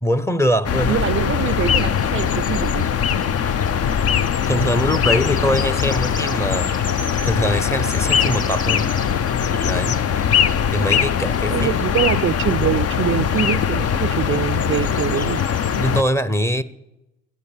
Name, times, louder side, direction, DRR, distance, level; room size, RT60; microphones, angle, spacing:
voice 1, 0.0-1.0 4.5-6.7 7.2-8.9 9.6-10.0 10.7-11.7 12.2-12.3 15.8-16.6, equal, 10° left, 0.8 m, -22 dB
sound 1, 0.6-16.0, left 8 dB, 55° left, 0.7 m, -21 dB
voice 2, 0.9-2.9 11.5-15.4, right 10 dB, 45° right, 0.4 m, -24 dB
sound 2, 1.7-15.8, left 2 dB, 25° left, 1.7 m, -38 dB
15.5 x 8.3 x 7.2 m
cardioid pair, 90°, 30 cm